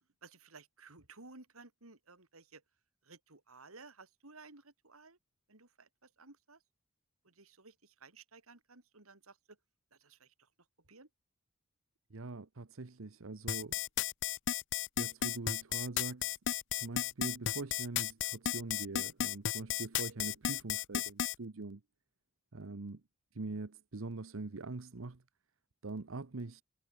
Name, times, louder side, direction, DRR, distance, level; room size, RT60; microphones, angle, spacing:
voice 1, 0.2-2.6 3.0-5.2 5.5-6.6 7.2-9.6 9.9-10.5 10.9-11.1, right 3 dB, 85° right, 3.4 m, -56 dB
voice 2, 12.1-13.8 15.0-16.3 16.7-21.8 22.5-23.0 23.3-25.2 25.8-26.6, right 3 dB, 70° right, 0.9 m, -43 dB
sound 1, 13.5-21.3, left 11 dB, 60° left, 0.6 m, -34 dB
head